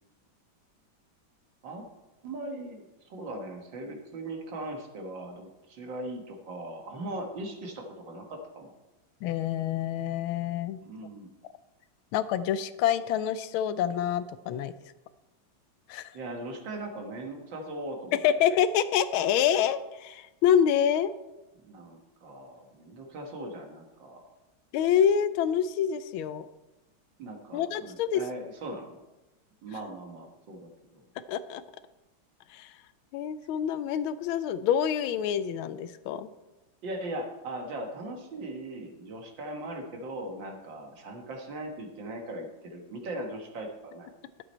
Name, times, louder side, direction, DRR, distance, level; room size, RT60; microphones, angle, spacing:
voice 1, 2.2-8.7 10.8-11.3 16.1-18.1 21.6-24.3 27.2-29.0 29.6-31.0 36.8-44.1, right 1 dB, 65° right, 3 dB, 2.1 m, -39 dB
voice 2, 9.2-10.8 12.1-14.7 15.9-16.1 18.2-21.1 24.7-26.5 27.5-28.2 31.3-31.6 32.5-32.7 33.1-36.3, left 9 dB, 85° left, 13 dB, 1.4 m, -27 dB
11.5 x 7.9 x 4.3 m, 1.0 s
omnidirectional pair, 2.2 m